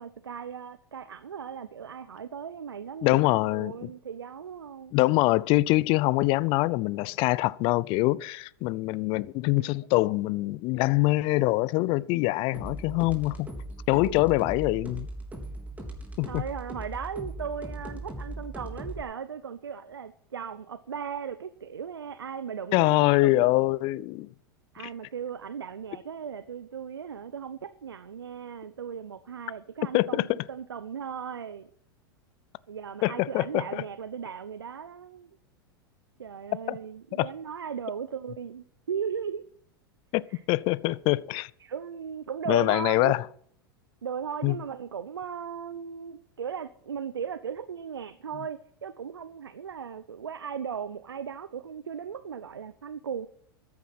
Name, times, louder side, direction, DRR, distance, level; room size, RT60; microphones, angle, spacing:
voice 1, 0.0-3.2 3.5-4.9 9.6-9.7 14.0-14.1 16.3-23.5 24.7-31.7 32.7-35.3 36.2-39.5 40.3-40.4 40.9-41.0 41.6-43.1 44.0-53.3, right 7 dB, 85° right, 0.7 m, -37 dB
voice 2, 3.0-3.9 4.9-13.5 13.9-15.1 16.2-16.4 22.7-24.3 29.9-30.4 33.0-33.8 36.7-36.8 37.1-37.3 40.1-41.5 42.5-43.2 44.4-44.6, left 20 dB, 45° left, 0.6 m, -24 dB
sound 1, 12.5-19.0, right 1 dB, 10° right, 3.6 m, -39 dB
13.5 x 9.6 x 5.8 m
hypercardioid pair, 100°, 12 cm